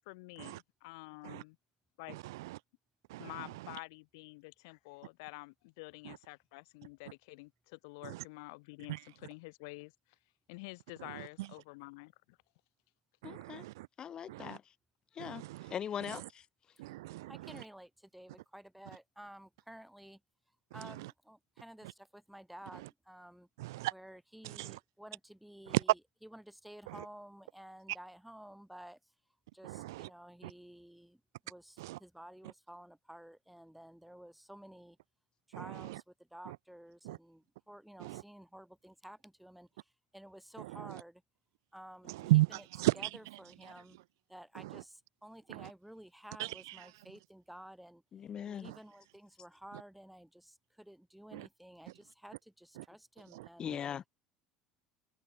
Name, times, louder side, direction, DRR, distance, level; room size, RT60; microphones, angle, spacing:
voice 1, 0.1-1.6 2.0-2.2 3.2-9.9 10.5-12.4, left 27 dB, 75° left, 1.0 m, -49 dB
voice 2, 2.1-2.6 3.1-3.8 6.0-6.2 8.0-8.2 8.9-9.0 11.0-11.5 13.2-13.9 14.3-14.6 15.2-15.7 16.1-16.3 16.8-17.6 20.7-21.1 22.7-22.8 23.6-23.9 24.4-24.8 25.7-25.8 26.9-27.0 29.6-30.1 30.4-30.5 31.8-32.0 35.5-36.0 36.5-36.6 37.0-37.2 38.0-38.2 40.6-41.0 42.1-43.1 44.6-44.8 45.5-45.7 46.4-46.9 48.6-48.8 51.3-51.5 52.8-52.9 53.3-53.5, right 19 dB, 80° right, 0.5 m, -36 dB
voice 3, 13.2-13.6 14.0-14.7 15.1-16.5 48.1-48.7 53.6-54.0, left 8 dB, 40° left, 1.4 m, -41 dB
voice 4, 17.3-20.2 20.7-23.5 23.9-29.1 29.5-35.0 35.5-41.2 41.7-42.1 42.5-42.6 42.9-44.0 44.3-48.0 48.4-53.7, equal, 5° right, 5.9 m, -53 dB
open air
hypercardioid pair, 80°, 2 cm